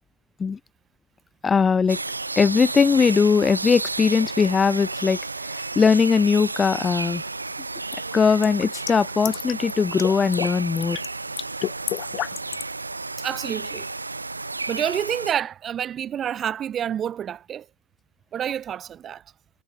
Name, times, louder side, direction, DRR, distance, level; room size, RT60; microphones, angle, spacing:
voice 1, 1.4-2.0 2.4-7.2 8.1-11.0, left 5 dB, 15° left, 1.1 m, -20 dB
sound 1, 1.9-15.3, right 3 dB, 80° right, 0.8 m, -32 dB
sound 2, 6.8-7.0 7.9-9.7 10.0-10.5 10.8-11.1 11.4-12.7, left 14 dB, 35° left, 1.4 m, -30 dB
voice 2, 13.2-13.9 14.7-17.6 18.3-19.2, right 9 dB, 25° right, 1.0 m, -28 dB
figure-of-eight pair, 90°, 0 cm